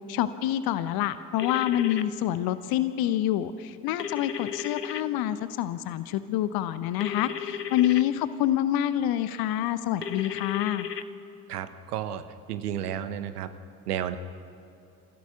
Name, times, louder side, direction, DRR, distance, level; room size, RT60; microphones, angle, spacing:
voice 1, 0.1-10.9, left 12 dB, 50° left, 13 dB, 0.9 m, -27 dB
sound 1, 1.4-2.0 4.0-5.0 7.0-8.0 10.0-11.0, left 8 dB, 90° left, 0.6 m, -34 dB
voice 2, 11.5-12.2 12.5-13.5 13.9-14.2, right 10 dB, 70° right, 11 dB, 1.1 m, -32 dB
29.0 x 16.0 x 5.9 m, 2.7 s
figure-of-eight pair, 50°, 47 cm